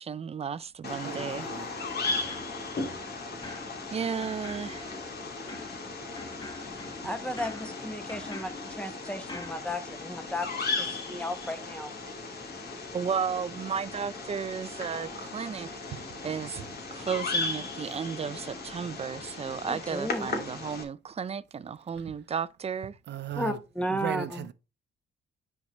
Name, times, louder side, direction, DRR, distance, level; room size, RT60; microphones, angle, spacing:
voice 1, 0.0-1.5 3.9-4.9 12.9-16.6 16.9-23.0, right 7 dB, 30° right, 0.5 m, -34 dB
Bird vocalization bird call bird song, 0.8-20.8, left 3 dB, 50° left, 2.5 m, -36 dB
voice 2, 1.0-1.7 15.9-16.0 16.6-16.7 22.1-22.2 23.1-23.6 23.9-24.5, right 11 dB, 60° right, 0.8 m, -37 dB
sound 1, 1.8-3.1 3.4-9.6, left 3 dB, 20° left, 1.6 m, -46 dB
voice 3, 7.0-11.9 19.7-20.4 23.4-24.5, equal, 5° left, 1.2 m, -34 dB
9.7 x 4.6 x 3.1 m
cardioid pair, 90°, 20 cm